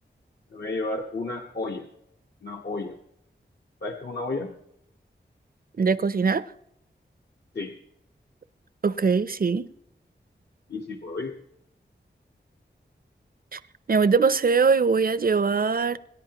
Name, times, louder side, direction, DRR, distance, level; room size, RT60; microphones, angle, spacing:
voice 1, 0.5-1.9 2.4-3.0 3.8-4.5 7.5-7.7 10.7-11.3, left 2 dB, 60° left, 1.2 m, -32 dB
voice 2, 5.8-6.5 8.8-9.7 13.5-13.6 13.9-16.0, right 5 dB, 50° right, 0.6 m, -22 dB
26.5 x 10.5 x 2.9 m
wide cardioid pair, 75°, 19 cm